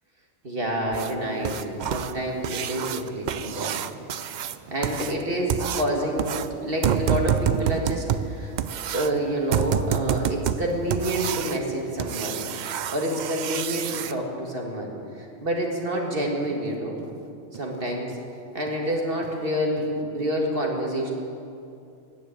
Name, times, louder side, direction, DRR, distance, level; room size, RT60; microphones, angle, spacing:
voice 1, 0.4-3.7 4.7-8.5 8.9-12.4 12.9-14.9 15.2-17.0 17.5-18.1 18.5-21.1, equal, 45° right, 0 dB, 2.1 m, -28 dB
sound 1, 0.9-14.1 16.4-16.5 17.0-17.1 17.5-17.6 18.1-18.2 18.7-18.8 19.2-19.3 19.8-19.9, right 9 dB, 80° right, 0.4 m, -28 dB
16.5 x 7.4 x 9.0 m, 2.6 s
omnidirectional pair, 1.3 m